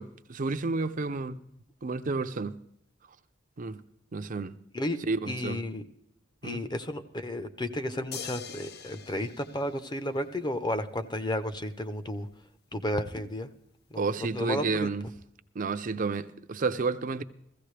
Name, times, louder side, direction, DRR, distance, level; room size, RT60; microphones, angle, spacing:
voice 1, 0.0-1.4 1.8-2.6 3.6-3.8 4.1-4.5 5.1-5.6 6.4-6.6 14.0-15.1 15.5-17.2, right 4 dB, 45° right, 0.6 m, -31 dB
voice 2, 5.2-5.8 6.4-12.3 12.7-13.5 13.9-14.9, left 1 dB, 25° left, 0.9 m, -33 dB
sound 1, 8.1-10.6 12.3-12.4, left 7 dB, 55° left, 0.7 m, -44 dB
16.0 x 15.0 x 3.3 m
head